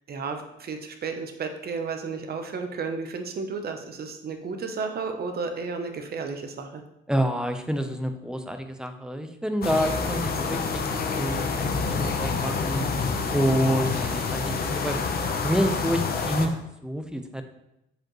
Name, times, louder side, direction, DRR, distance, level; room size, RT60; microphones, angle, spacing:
voice 1, 0.1-6.8, right 4 dB, 50° right, 6 dB, 0.8 m, -33 dB
voice 2, 7.1-12.9 13.3-15.0 15.4-16.5 16.8-17.4, equal, 5° right, 6 dB, 0.7 m, -28 dB
sound 1, 9.6-16.5, left 4 dB, 50° left, 0.8 m, -27 dB
7.2 x 4.9 x 3.1 m, 0.84 s
cardioid pair, 90°, 20 cm